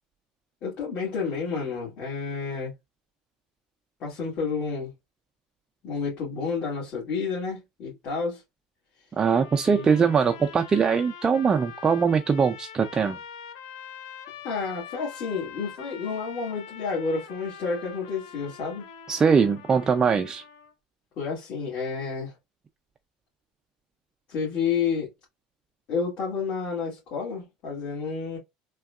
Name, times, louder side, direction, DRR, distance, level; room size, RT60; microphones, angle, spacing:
voice 1, 0.6-2.7 4.0-4.9 5.8-8.4 9.7-10.3 14.4-18.8 21.1-22.3 24.3-25.1 25.9-28.4, left 5 dB, 55° left, 1.7 m, -30 dB
voice 2, 9.1-13.2 19.1-20.4, right 6 dB, 25° right, 0.3 m, -22 dB
sound 1, 9.2-20.7, left 7 dB, 90° left, 0.6 m, -44 dB
3.5 x 2.2 x 2.3 m
supercardioid pair, 110°, 3 cm